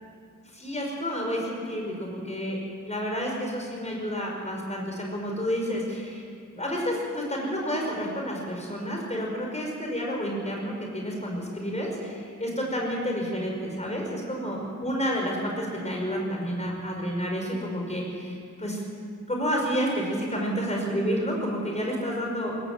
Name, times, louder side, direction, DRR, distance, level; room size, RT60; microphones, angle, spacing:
voice 1, 0.5-6.2 6.5-18.8 19.3-22.5, equal, 20° left, -1 dB, 5.3 m, -30 dB
21.5 x 17.0 x 7.6 m, 2.3 s
wide cardioid pair, 145°, 32 cm